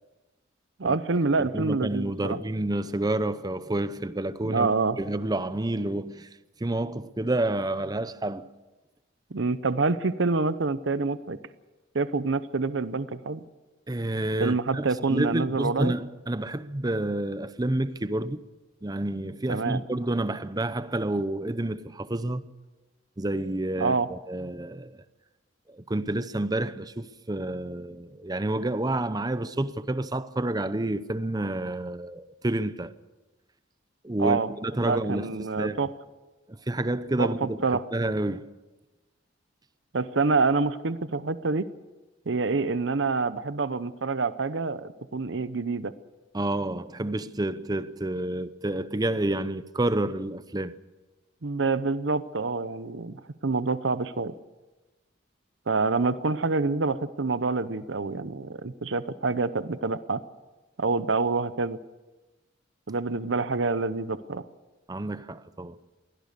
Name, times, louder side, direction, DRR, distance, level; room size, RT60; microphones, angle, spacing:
voice 1, 0.8-2.4 4.5-5.0 9.3-11.4 11.9-13.4 14.4-15.9 19.5-19.8 23.8-24.1 34.2-34.5 34.8-35.9 37.2-37.8 39.9-41.7 42.3-45.9 51.4-54.3 55.7-60.2 60.8-61.8 62.9-64.4, right 3 dB, 65° right, 0.8 m, -27 dB
voice 2, 1.4-4.7 5.0-6.3 6.6-8.5 13.9-18.4 18.8-22.5 23.2-24.9 25.7-32.9 34.0-35.8 36.5-38.5 46.3-50.8 64.9-65.8, right 1 dB, 20° right, 0.7 m, -29 dB
23.0 x 17.0 x 6.7 m
head